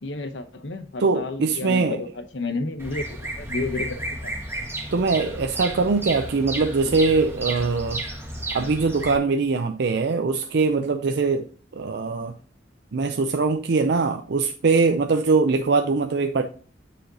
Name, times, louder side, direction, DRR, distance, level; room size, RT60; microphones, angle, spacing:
voice 1, 0.0-3.1 3.4-4.4 6.8-7.0, left 3 dB, 70° left, 0.8 m, -31 dB
voice 2, 1.0-2.0 4.9-8.0 8.5-11.5 11.8-12.3 12.9-16.4, right 4 dB, 60° right, 0.5 m, -22 dB
Bird vocalization bird call bird song, 2.8-9.2, right 1 dB, 15° right, 1.5 m, -32 dB
9.0 x 4.9 x 2.7 m
head